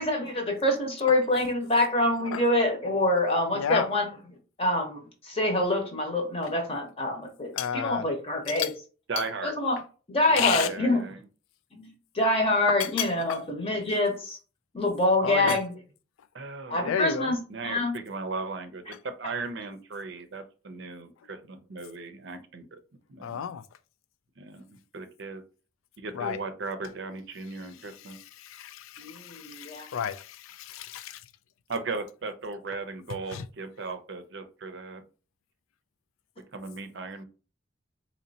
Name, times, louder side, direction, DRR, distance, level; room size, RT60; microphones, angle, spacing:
voice 1, 0.0-4.1 4.6-8.7 9.4-9.8 10.1-11.1 11.7-14.4 14.7-15.7 16.7-17.9 29.0-29.9, left 1 dB, 30° left, 0.9 m, -26 dB
voice 2, 3.5-3.9 7.6-8.1 8.6-8.7 10.4-10.7 13.0-13.4 15.2-15.6 16.8-17.3 23.2-23.6 26.1-26.4 28.1-31.2 33.3-33.4, left 9 dB, 85° left, 0.4 m, -31 dB
voice 3, 9.1-9.5 10.6-11.2 16.3-16.9 17.5-22.8 23.1-23.4 24.4-24.6 24.9-25.4 26.0-28.2 31.7-35.0 36.5-37.2, right 3 dB, 60° right, 0.5 m, -37 dB
4.0 x 3.0 x 2.7 m
head